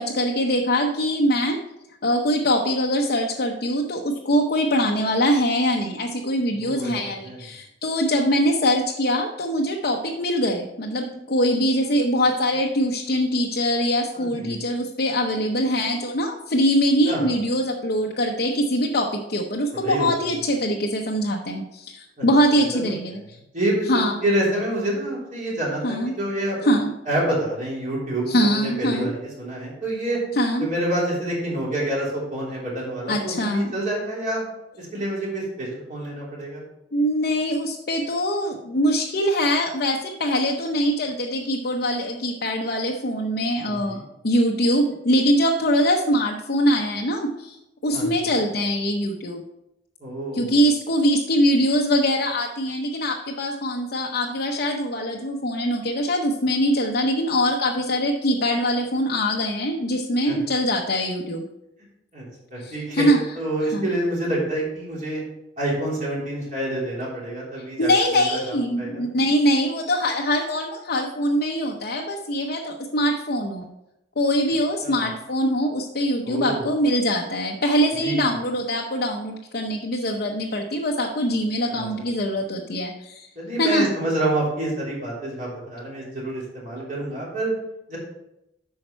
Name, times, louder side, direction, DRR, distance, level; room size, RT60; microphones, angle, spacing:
voice 1, 0.0-1.6 2.0-23.2 23.9-24.2 25.8-26.2 26.6-26.9 28.3-29.1 30.4-30.7 33.1-33.7 36.9-47.6 47.8-49.4 50.3-61.4 62.6-63.2 63.7-63.9 67.6-73.7 74.2-83.3 83.6-83.9, equal, 55° left, -1 dB, 0.7 m, -23 dB
voice 2, 6.5-6.9 7.2-7.4 14.1-14.6 17.1-17.3 19.8-20.1 22.2-22.3 22.7-22.8 23.1-23.2 23.5-26.6 27.0-29.1 29.4-30.2 30.6-34.4 34.8-36.6 43.6-44.0 47.9-48.4 50.0-50.6 60.3-60.4 62.1-65.2 65.6-68.4 68.8-69.0 74.8-75.1 76.3-76.6 78.0-78.3 81.7-81.9 83.3-87.5 87.9-88.0, right 1 dB, 45° right, -5 dB, 3.3 m, -27 dB
8.7 x 5.6 x 4.4 m, 0.87 s
head